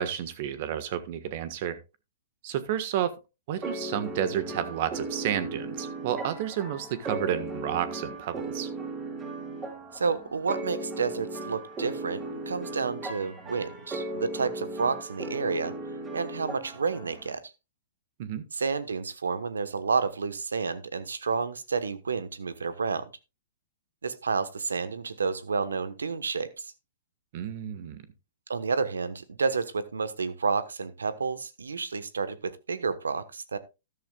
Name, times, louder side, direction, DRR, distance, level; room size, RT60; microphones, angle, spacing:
voice 1, 0.0-1.8 2.4-3.1 3.5-8.7 18.2-18.4 27.3-28.0, right 10 dB, 50° right, 13 dB, 1.4 m, -31 dB
sound 1, 3.6-17.3, right 2 dB, 25° right, 4.4 m, -37 dB
voice 2, 9.9-15.7 16.1-17.5 18.5-23.1 24.0-26.7 28.5-33.6, right 5 dB, 90° right, 14 dB, 1.2 m, -30 dB
13.0 x 11.5 x 2.3 m, 0.27 s
hypercardioid pair, 125°, 0 cm